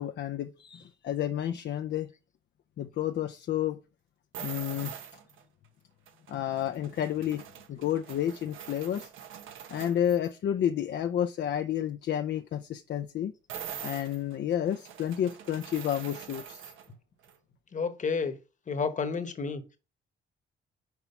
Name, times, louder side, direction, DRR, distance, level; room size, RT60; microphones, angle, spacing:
voice 1, 0.0-2.1 2.8-3.8 4.4-4.9 6.3-7.4 7.7-9.1 9.7-13.3 13.8-16.7, left 10 dB, 60° left, 0.6 m, -30 dB
sound 1, 4.3-5.4 6.1-10.3 13.5-16.9 17.2-17.4, right 9 dB, 85° right, 1.1 m, -44 dB
voice 2, 17.7-18.4 18.7-19.6, left 5 dB, 40° left, 1.2 m, -30 dB
6.0 x 4.5 x 5.6 m
cardioid pair, 90°, 20 cm